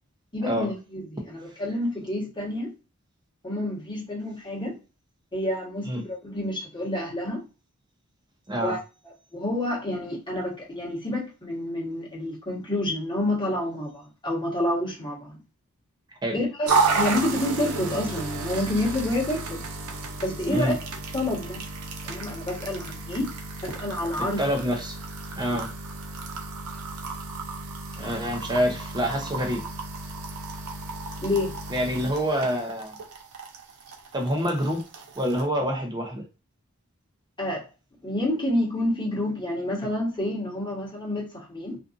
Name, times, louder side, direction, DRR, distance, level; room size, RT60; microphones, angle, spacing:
voice 1, 0.3-2.7 3.4-4.8 5.3-7.4 8.6-8.8 9.3-15.4 16.3-16.7 16.9-19.6 20.2-20.7 21.1-21.7 22.0-23.3 23.6-24.4 25.5-25.6 31.2-31.6 37.4-37.7 38.0-41.8, left 1 dB, 20° left, 1.2 m, -28 dB
voice 2, 8.5-8.8 16.2-16.4 20.5-20.8 24.4-25.0 25.4-25.7 28.0-29.6 31.7-33.0 34.1-34.8 35.2-36.2, equal, 20° right, 0.6 m, -26 dB
sound 1, 16.7-35.5, right 4 dB, 80° right, 0.6 m, -32 dB
2.5 x 2.5 x 2.5 m
head